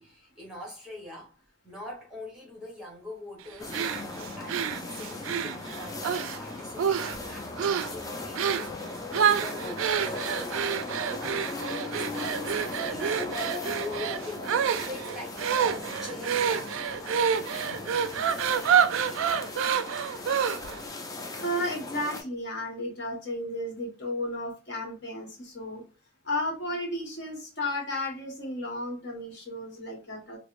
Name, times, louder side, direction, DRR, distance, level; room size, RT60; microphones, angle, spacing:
voice 1, 0.0-1.4 1.6-17.0 17.3-18.4, left 1 dB, 5° right, 1.1 m, -43 dB
sound 1, 3.6-22.2, left 3 dB, 15° left, 0.4 m, -38 dB
sound 2, 3.7-6.4 6.8-7.3 7.6-7.9 8.4-8.7 9.1-20.8, right 8 dB, 75° right, 0.3 m, -28 dB
voice 2, 21.4-25.8 26.2-30.4, left 1 dB, 55° left, 1.1 m, -33 dB
4.7 x 2.0 x 2.4 m
head